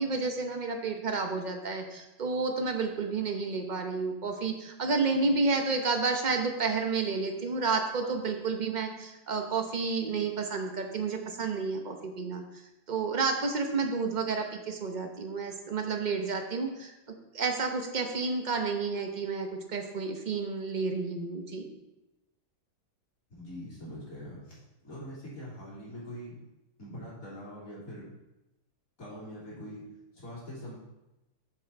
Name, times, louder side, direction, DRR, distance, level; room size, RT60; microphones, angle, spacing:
voice 1, 0.0-12.4 12.9-16.9 17.3-21.7, right 4 dB, 35° right, 4 dB, 0.9 m, -30 dB
voice 2, 23.3-26.4 26.8-28.1 29.0-29.8 30.1-30.7, equal, 60° left, -7 dB, 3.6 m, -43 dB
7.4 x 7.1 x 4.2 m, 0.97 s
omnidirectional pair, 1.6 m